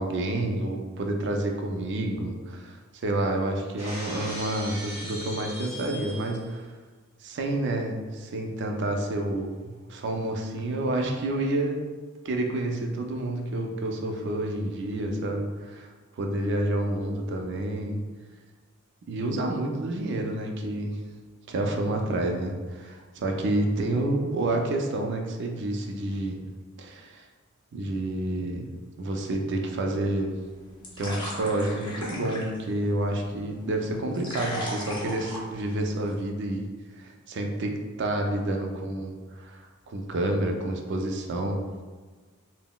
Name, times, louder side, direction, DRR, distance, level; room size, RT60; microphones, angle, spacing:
voice 1, 0.0-6.7 7.2-11.8 12.2-15.9 16.2-18.0 19.1-21.0 21.5-26.4 26.8-27.2 27.7-28.7 29.0-30.4 31.0-36.7 36.9-41.7, right 1 dB, 55° right, 2 dB, 0.4 m, -29 dB
Shatter, 3.8-6.5, equal, 30° right, 0.8 m, -38 dB
sound 1, 30.3-36.2, equal, 25° left, 0.6 m, -39 dB
3.7 x 2.0 x 2.2 m, 1.4 s
head